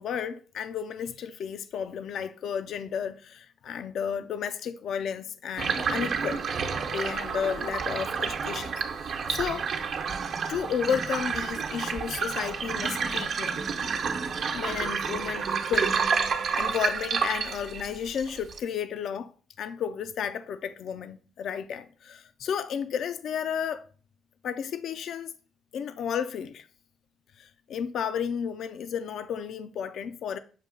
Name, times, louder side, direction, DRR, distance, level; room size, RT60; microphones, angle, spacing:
voice 1, 0.0-6.4 6.9-8.7 9.0-9.7 10.5-13.6 14.5-16.0 16.5-19.3 19.6-23.8 24.4-25.3 25.7-26.7 27.4-30.4, left 8 dB, 70° left, 0.4 m, -32 dB
sound 1, 5.6-18.6, right 5 dB, 65° right, 0.9 m, -29 dB
7.4 x 2.8 x 5.1 m
cardioid pair, 90°, 0 cm